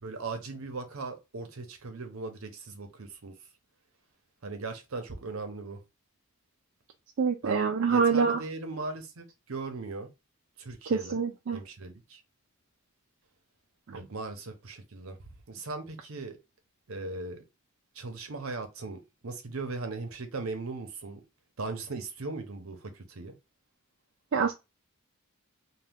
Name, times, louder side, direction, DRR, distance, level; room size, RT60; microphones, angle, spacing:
voice 1, 0.0-3.4 4.4-5.8 7.4-10.1 10.6-11.2 11.5-12.2 13.9-15.2 15.5-16.4 16.9-17.4 17.9-21.2 21.6-23.3, right 3 dB, 75° right, 0.7 m, -38 dB
voice 2, 7.2-8.4 10.9-11.6 13.9-14.0 24.3-24.5, right 5 dB, 55° right, 0.4 m, -26 dB
2.8 x 2.2 x 3.5 m
head